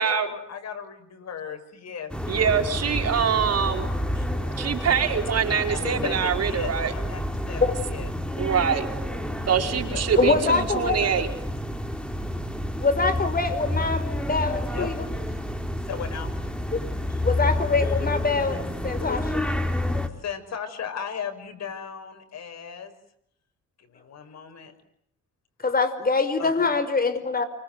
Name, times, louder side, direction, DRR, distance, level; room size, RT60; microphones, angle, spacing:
voice 1, 0.0-2.1 3.7-4.8 5.5-8.1 9.3-9.6 9.9-10.6 11.0-11.3 14.7-14.9 15.8-16.4 17.1-17.2 19.0-19.2 20.2-22.9 23.8-24.7 25.6-25.8 26.4-26.7, left 7 dB, 60° left, 7 dB, 6.6 m, -37 dB
sound 1, 2.1-20.1, left 1 dB, 5° left, 3.9 m, -29 dB
voice 2, 2.3-3.9 4.6-6.9 8.4-8.9 9.5-11.3, right 7 dB, 55° right, 4 dB, 5.1 m, -24 dB
voice 3, 10.2-11.1 12.8-15.1 16.7-16.8 17.2-19.2 25.6-27.4, left 4 dB, 30° left, 10 dB, 5.4 m, -24 dB
30.0 x 25.0 x 7.9 m, 0.72 s
cardioid pair, 90°, 30 cm